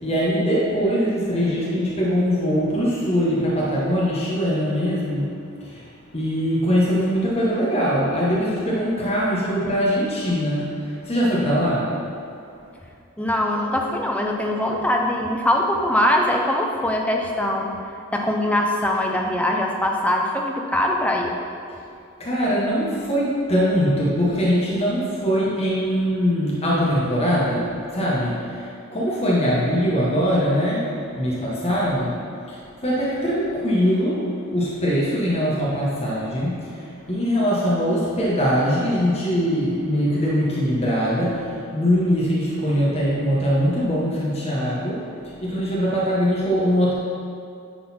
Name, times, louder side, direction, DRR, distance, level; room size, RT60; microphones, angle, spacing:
voice 1, 0.0-5.3 5.6-5.9 6.1-11.9 22.2-27.7 27.9-30.8 31.1-32.1 32.5-34.2 34.5-45.0 45.4-46.9, equal, 30° left, -7 dB, 1.2 m, -22 dB
voice 2, 13.2-17.7 18.1-21.3, left 1 dB, 5° left, 1 dB, 0.6 m, -22 dB
10.0 x 4.0 x 4.3 m, 2.5 s
head